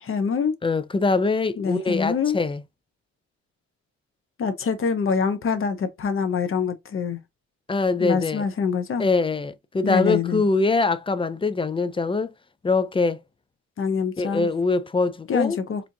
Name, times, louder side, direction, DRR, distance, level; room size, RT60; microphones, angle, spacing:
voice 1, 0.0-0.6 1.6-2.4 4.4-7.2 8.0-9.1 9.8-10.4 13.8-14.5 15.3-15.8, left 6 dB, 45° left, 0.8 m, -25 dB
voice 2, 0.6-2.6 7.7-8.4 9.0-12.3 12.6-13.2 14.2-15.6, left 3 dB, 20° left, 0.4 m, -23 dB
4.4 x 2.6 x 2.6 m
cardioid pair, 90°, 30 cm